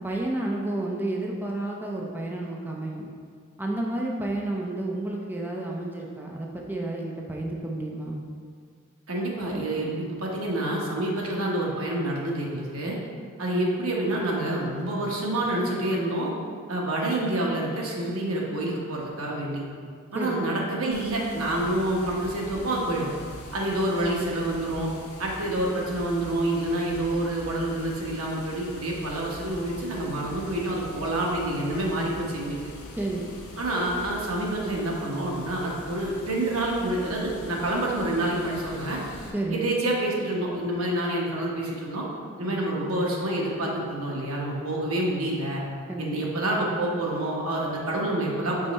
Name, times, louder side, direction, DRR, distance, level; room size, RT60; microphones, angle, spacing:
voice 1, 0.0-3.0 3.6-8.2 20.1-20.4 33.0-33.3 39.3-39.7 42.4-42.6 45.9-46.3, right 2 dB, 10° right, -1 dB, 0.4 m, -31 dB
voice 2, 9.1-13.0 13.4-16.3 16.7-19.6 20.1-23.1 23.5-24.9 25.2-32.6 33.6-39.0 39.5-42.0 42.4-45.6 46.0-48.7, right 1 dB, 80° right, -2 dB, 1.1 m, -27 dB
Water, 20.9-39.3, left 1 dB, 80° left, 0.9 m, -43 dB
5.3 x 4.3 x 4.1 m, 2.1 s
head